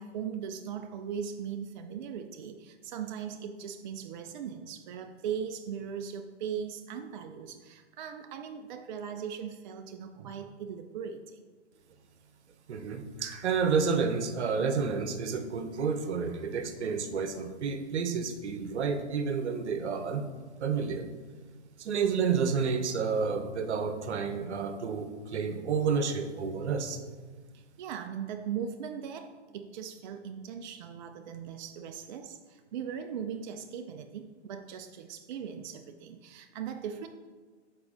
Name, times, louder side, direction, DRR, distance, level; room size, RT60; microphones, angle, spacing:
voice 1, 0.0-11.4 27.5-37.1, right 7 dB, 45° right, 6 dB, 0.4 m, -39 dB
voice 2, 12.7-20.2 20.6-21.1 21.8-27.0, right 5 dB, 75° right, 8 dB, 0.9 m, -30 dB
6.9 x 4.4 x 3.7 m, 1.4 s
hypercardioid pair, 130°, 34 cm